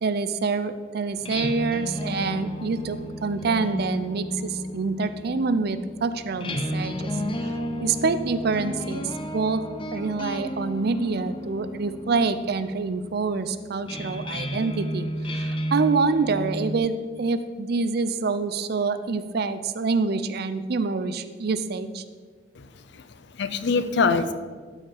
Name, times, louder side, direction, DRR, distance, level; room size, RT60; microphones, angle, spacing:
voice 1, 0.0-7.1 7.4-7.5 7.8-9.6 9.9-22.0, right 4 dB, 60° right, 12 dB, 0.5 m, -26 dB
sound 1, 1.1-16.8, equal, 30° left, 0.7 m, -33 dB
voice 2, 22.6-24.3, left 4 dB, 70° left, 12 dB, 0.6 m, -25 dB
12.5 x 4.9 x 4.7 m, 1.5 s
head